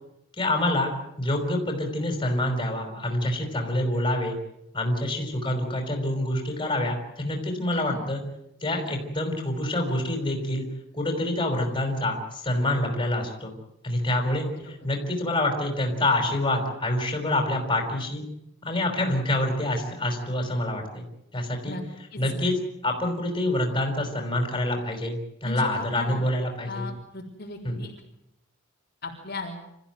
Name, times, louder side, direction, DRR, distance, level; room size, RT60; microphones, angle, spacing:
voice 1, 0.4-0.9 1.2-4.4 4.7-8.2 8.6-10.6 10.9-13.5 13.8-14.5 14.8-18.2 18.6-21.0 21.3-21.8 22.2-22.5 22.8-26.9 27.6-27.8, left 1 dB, 20° left, 3 dB, 5.3 m, -26 dB
voice 2, 22.1-22.5 25.4-26.2 26.7-27.9 29.0-29.7, left 2 dB, 45° left, -3 dB, 4.0 m, -37 dB
27.0 x 15.0 x 9.3 m, 0.83 s
head